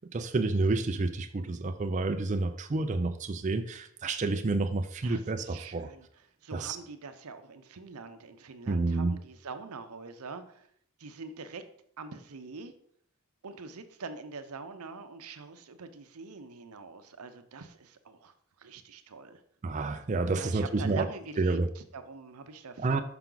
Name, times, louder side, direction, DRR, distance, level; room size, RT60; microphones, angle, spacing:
voice 1, 0.1-5.9 6.5-6.8 8.7-9.2 19.6-21.1 21.4-21.7 22.8-23.0, right 3 dB, 35° right, 7 dB, 0.4 m, -29 dB
voice 2, 5.0-6.1 6.4-10.7 11.0-11.6 12.0-12.7 13.4-19.4 20.3-23.0, right 4 dB, 80° right, 9 dB, 0.7 m, -44 dB
5.9 x 5.7 x 3.8 m, 0.65 s
head